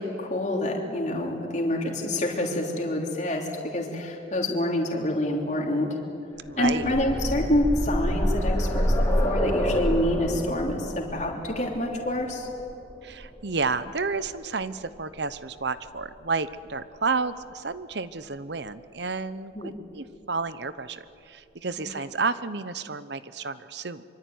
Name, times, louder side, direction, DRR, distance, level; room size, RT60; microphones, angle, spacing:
voice 1, 0.0-6.0 6.6-12.5 19.5-19.7, left 1 dB, 35° left, -1 dB, 3.4 m, -27 dB
sound 1, 6.4-14.2 15.4-15.5 15.9-16.0, equal, 15° left, 3.1 m, -28 dB
voice 2, 6.5-6.9 13.0-24.0, right 4 dB, 60° right, 14 dB, 0.9 m, -31 dB
25.5 x 24.0 x 9.4 m, 2.6 s
head